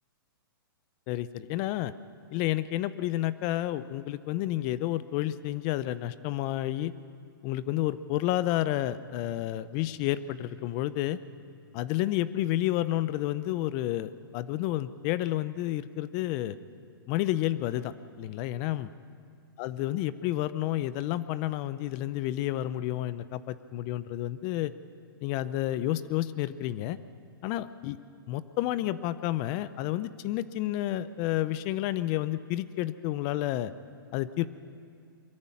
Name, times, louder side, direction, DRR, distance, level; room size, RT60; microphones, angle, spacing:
voice 1, 1.1-1.9 2.3-6.9 7.4-11.2 11.7-16.6 17.1-18.9 19.6-24.7 25.2-27.0 27.4-28.0 28.3-33.7 34.1-34.4, left 14 dB, 30° left, 16 dB, 0.6 m, -30 dB
sound 1, 8.6-12.7, equal, 65° left, 7.5 m, -60 dB
23.0 x 14.5 x 9.9 m, 2.4 s
hypercardioid pair, 145°, 12 cm